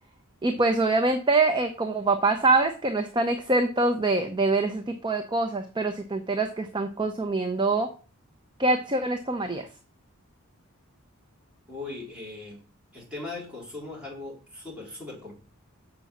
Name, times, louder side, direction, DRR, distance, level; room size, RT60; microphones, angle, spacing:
voice 1, 0.4-7.9 8.6-9.7, right 3 dB, 20° right, 5 dB, 0.7 m, -24 dB
voice 2, 11.7-12.6 12.9-15.3, left 3 dB, 5° right, -5 dB, 4.2 m, -39 dB
6.9 x 5.3 x 7.3 m, 0.37 s
head